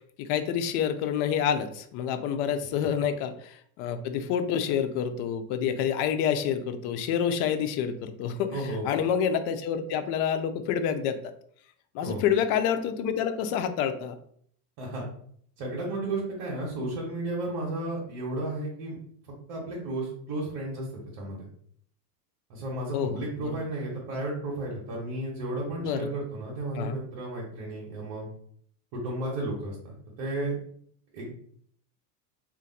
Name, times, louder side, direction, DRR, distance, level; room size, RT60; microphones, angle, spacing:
voice 1, 0.2-11.2 11.9-14.1 22.9-23.6 25.8-26.1 26.8-27.0, left 8 dB, 50° left, 9 dB, 0.5 m, -28 dB
voice 2, 8.5-8.8 12.0-12.2 14.8-15.0 15.6-19.0 19.5-20.9 21.1-21.5 22.5-28.3 28.9-30.6 31.1-31.3, right 2 dB, 60° right, -4 dB, 1.3 m, -33 dB
2.5 x 2.5 x 4.0 m, 0.63 s
supercardioid pair, 120°, 49 cm